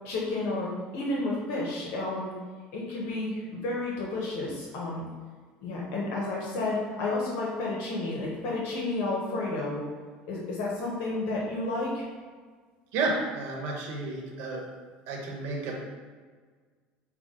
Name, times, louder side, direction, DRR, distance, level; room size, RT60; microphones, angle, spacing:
voice 1, 0.0-2.3 2.7-5.1 5.6-9.8 10.3-12.0, left 2 dB, 70° left, -3 dB, 0.9 m, -31 dB
voice 2, 12.9-14.7 15.1-15.7, right 3 dB, 70° right, -1 dB, 1.0 m, -31 dB
5.8 x 2.2 x 3.6 m, 1.5 s
supercardioid pair, 100°, 4 cm